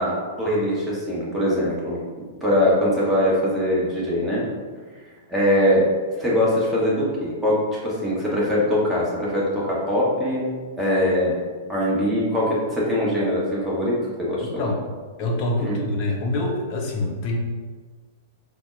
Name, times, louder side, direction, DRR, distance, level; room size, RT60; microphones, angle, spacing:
voice 1, 0.0-2.0 2.4-4.4 5.3-5.9 6.2-11.4 11.7-14.5 15.6-15.8, left 1 dB, 10° right, -6 dB, 1.0 m, -22 dB
voice 2, 14.4-14.8 15.2-17.4, left 2 dB, 40° left, 0 dB, 0.5 m, -25 dB
3.9 x 2.0 x 2.5 m, 1.5 s
figure-of-eight pair, 100°, 0 cm